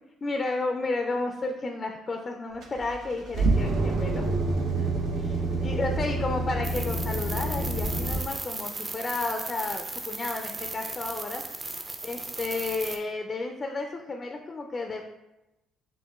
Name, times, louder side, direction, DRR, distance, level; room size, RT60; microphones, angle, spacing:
voice 1, 0.2-4.3 4.8-4.9 5.2-5.3 5.6-11.4 12.0-15.0, left 3 dB, 30° left, 4 dB, 0.4 m, -32 dB
sound 1, 2.6-8.2, right 2 dB, 70° right, 0.7 m, -27 dB
sound 2, 6.6-13.0, right 2 dB, 25° right, 0.6 m, -36 dB
7.2 x 2.5 x 2.3 m, 0.97 s
cardioid pair, 100°, 0 cm